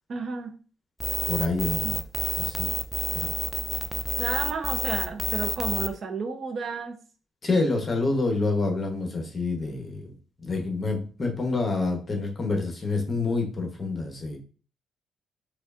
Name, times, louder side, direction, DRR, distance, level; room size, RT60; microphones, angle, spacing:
voice 1, 0.1-0.6 1.8-1.9 4.2-7.0, right 4 dB, 50° right, 5 dB, 0.7 m, -32 dB
sound 1, 1.0-5.9, equal, 5° right, 0.4 m, -29 dB
voice 2, 1.2-2.0 2.4-2.7 3.1-3.3 7.4-10.1 10.4-14.4, left 3 dB, 30° left, 1 dB, 1.0 m, -27 dB
4.9 x 2.4 x 2.5 m, 0.38 s
cardioid pair, 90°, 0 cm